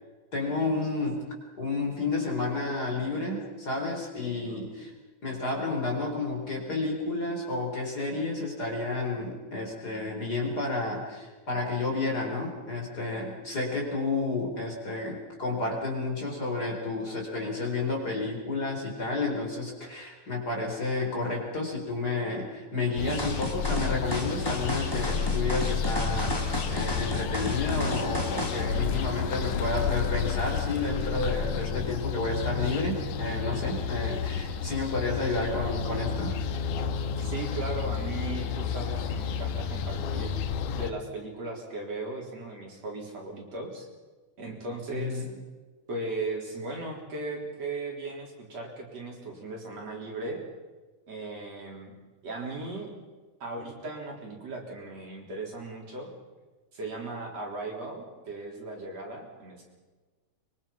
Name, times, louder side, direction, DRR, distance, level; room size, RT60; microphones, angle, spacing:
voice 1, 0.3-1.2 1.6-4.9 5.2-26.4 26.7-36.3 44.9-45.2, left 3 dB, 30° left, 0 dB, 4.6 m, -31 dB
sound 1, 23.0-40.9, left 6 dB, 90° left, 2.7 m, -31 dB
sound 2, 23.1-28.6, left 1 dB, 10° left, 2.8 m, -34 dB
voice 2, 37.2-40.3 40.7-43.9 44.4-45.3 45.9-50.4 51.1-51.9 52.2-52.9 53.4-56.1 56.7-59.7, right 2 dB, 55° right, -1 dB, 5.0 m, -37 dB
24.0 x 23.5 x 5.9 m, 1.3 s
omnidirectional pair, 3.5 m